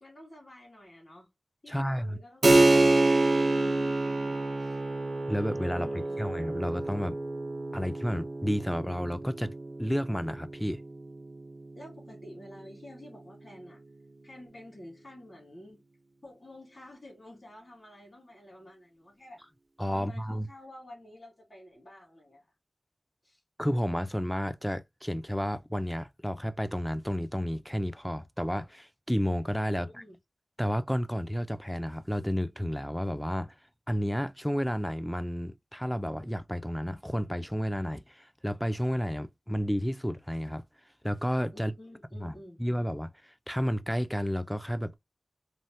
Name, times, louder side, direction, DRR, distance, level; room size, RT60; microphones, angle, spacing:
voice 1, 0.0-1.3 1.6-4.8 5.7-6.2 11.7-13.8 14.2-15.8 16.2-19.4 19.9-22.4 23.2-23.4 29.8-30.1 41.5-42.6, left 1 dB, 45° left, 1.7 m, -50 dB
voice 2, 1.7-2.2 5.3-7.2 7.7-9.5 9.8-10.8 19.8-20.5 23.6-30.0 30.6-33.5 33.9-40.6 41.0-41.7 42.1-45.0, equal, 5° left, 0.3 m, -31 dB
Keyboard (musical), 2.4-12.6, right 2 dB, 65° right, 0.5 m, -28 dB
3.1 x 2.1 x 2.7 m
wide cardioid pair, 50°, 0 cm